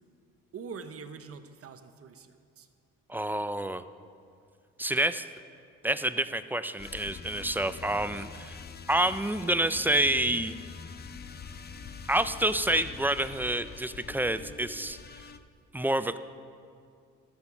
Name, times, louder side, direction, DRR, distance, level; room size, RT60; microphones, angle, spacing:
voice 1, 0.5-2.7, right 5 dB, 50° right, 9 dB, 0.9 m, -44 dB
voice 2, 3.1-3.8 4.8-5.3 5.8-8.6 8.9-10.5 12.1-15.3 15.7-16.2, right 1 dB, 5° right, 12 dB, 0.3 m, -28 dB
sound 1, 6.8-15.4, left 5 dB, 35° left, 0.6 m, -44 dB
13.0 x 8.0 x 5.8 m, 2.3 s
cardioid pair, 90°, 30 cm